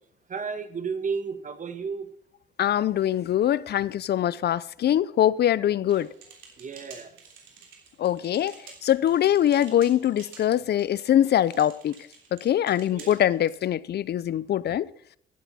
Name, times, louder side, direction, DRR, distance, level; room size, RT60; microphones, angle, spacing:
voice 1, 0.3-2.1 6.6-7.2 12.9-13.2 14.7-14.8, right 5 dB, 40° right, 1.5 m, -33 dB
voice 2, 2.6-6.1 8.0-11.9 12.3-14.9, left 11 dB, 55° left, 0.5 m, -23 dB
sound 1, 5.9-13.6, right 6 dB, 75° right, 3.3 m, -50 dB
14.5 x 10.5 x 4.2 m
cardioid pair, 90°, 20 cm